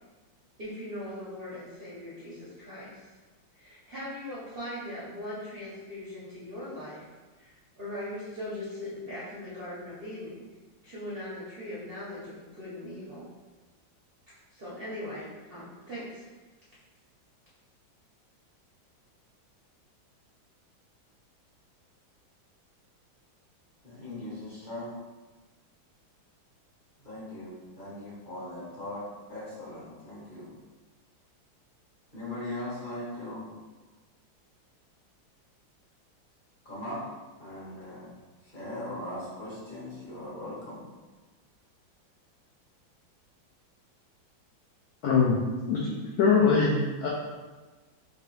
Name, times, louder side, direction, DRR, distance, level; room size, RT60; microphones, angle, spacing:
voice 1, 0.6-3.1 3.5-7.1 7.4-10.4 10.8-13.3 14.5-16.2, left 1 dB, 65° right, -9 dB, 0.5 m, -40 dB
voice 2, 23.8-24.9 27.0-30.5 32.1-33.5 36.6-37.0 37.4-38.1 38.4-40.8, left 1 dB, 40° left, -9 dB, 0.8 m, -39 dB
voice 3, 45.0-45.4 45.7-47.1, left 5 dB, 90° left, -4 dB, 0.8 m, -23 dB
3.5 x 2.9 x 3.1 m, 1.3 s
omnidirectional pair, 2.2 m